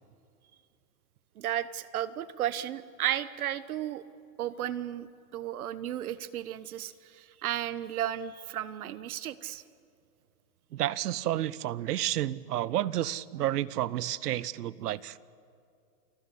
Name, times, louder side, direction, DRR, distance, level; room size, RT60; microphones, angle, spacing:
voice 1, 1.4-4.0 4.4-5.1 5.3-9.6, right 11 dB, 65° right, 16 dB, 1.2 m, -34 dB
voice 2, 10.7-15.2, right 13 dB, 85° right, 20 dB, 0.9 m, -30 dB
29.0 x 19.5 x 8.5 m, 2.5 s
supercardioid pair, 175°, 46 cm